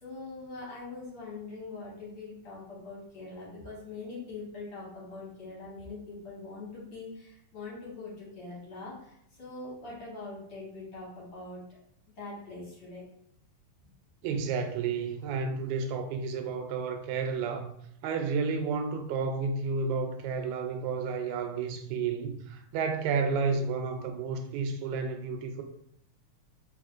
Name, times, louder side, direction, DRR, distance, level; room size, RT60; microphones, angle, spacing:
voice 1, 0.0-11.6 12.2-13.0, left 3 dB, 55° left, 1.8 m, -43 dB
voice 2, 14.2-17.7 18.0-25.6, right 5 dB, 85° right, 1.9 m, -31 dB
4.2 x 3.3 x 2.4 m
omnidirectional pair, 3.4 m